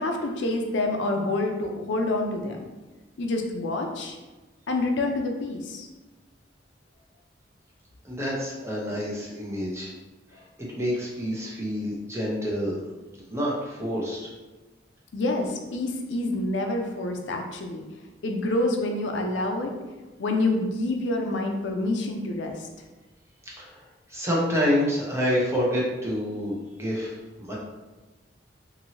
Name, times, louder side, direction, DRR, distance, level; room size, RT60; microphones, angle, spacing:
voice 1, 0.0-2.6 3.2-4.2 4.7-5.9 15.1-17.8 18.2-19.8 20.2-22.7, left 2 dB, 75° left, 3 dB, 0.4 m, -27 dB
voice 2, 8.0-9.9 10.8-12.8 13.3-14.3 23.6-23.8 24.1-27.5, equal, 15° right, -4 dB, 0.6 m, -27 dB
2.8 x 2.6 x 2.8 m, 1.2 s
head